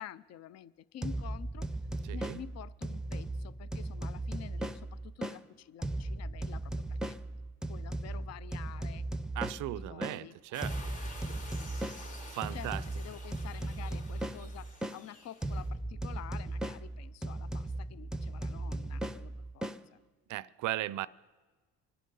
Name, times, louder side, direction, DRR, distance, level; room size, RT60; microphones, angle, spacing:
voice 1, 0.0-1.7 2.1-7.2 7.7-9.1 9.4-10.4 12.5-20.0, left 11 dB, 60° left, 0.5 m, -49 dB
sound 1, 1.0-5.4 5.8-10.2 10.6-15.0 15.4-19.8, right 1 dB, ahead, 0.5 m, -37 dB
voice 2, 2.1-2.4 9.4-10.8 12.3-12.8 20.3-21.1, right 15 dB, 80° right, 0.5 m, -37 dB
sound 2, 10.5-15.7, left 2 dB, 80° left, 4.6 m, -50 dB
24.5 x 10.0 x 5.4 m
cardioid pair, 90°, 30 cm